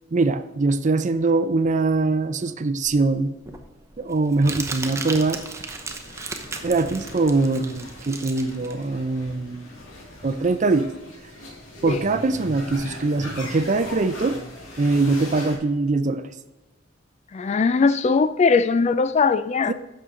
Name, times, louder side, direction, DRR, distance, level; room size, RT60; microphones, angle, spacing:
voice 1, 0.1-3.3 4.0-5.4 6.6-9.7 10.2-10.9 11.8-14.4 14.8-16.3 19.7-19.8, right 3 dB, 35° right, 12 dB, 0.5 m, -22 dB
Crumpling crinkling, 2.8-9.9, right 3 dB, 15° right, 0.8 m, -36 dB
sound 1, 4.8-15.6, left 1 dB, 75° left, 2.5 m, -40 dB
voice 2, 17.3-19.7, left 4 dB, 35° left, 13 dB, 0.3 m, -20 dB
10.5 x 6.8 x 3.7 m, 1.1 s
head